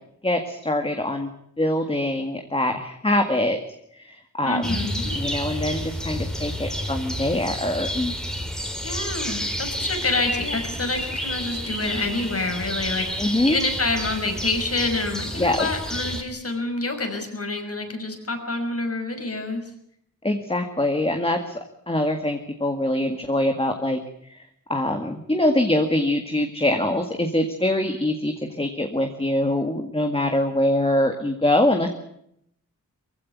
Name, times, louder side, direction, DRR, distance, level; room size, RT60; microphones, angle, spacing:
voice 1, 0.2-1.3 1.6-3.6 4.0-4.8 5.2-8.1 13.2-13.6 15.4-15.7 20.2-21.6 21.9-24.0 24.7-28.3 28.6-31.9, left 1 dB, 20° left, 5 dB, 1.9 m, -23 dB
voice 2, 4.4-5.2 8.8-19.7, left 2 dB, 50° left, 5 dB, 5.7 m, -27 dB
sound 1, 4.6-16.2, equal, ahead, 3.1 m, -30 dB
23.5 x 16.0 x 9.4 m, 0.74 s
wide cardioid pair, 120°, 31 cm